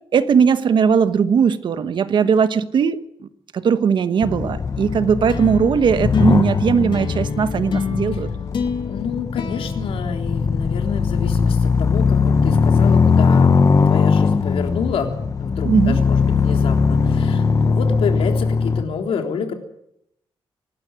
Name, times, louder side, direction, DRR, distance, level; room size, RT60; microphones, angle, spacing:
voice 1, 0.1-3.0 3.5-8.3 15.6-16.0, right 6 dB, 60° right, 12 dB, 1.2 m, -18 dB
sound 1, 4.2-18.8, left 5 dB, 35° left, 1.0 m, -19 dB
sound 2, 5.3-10.9, left 7 dB, 60° left, 2.2 m, -30 dB
voice 2, 8.8-19.5, left 6 dB, 90° left, 4 dB, 3.7 m, -28 dB
25.0 x 13.0 x 9.4 m, 0.77 s
wide cardioid pair, 160°, 9 cm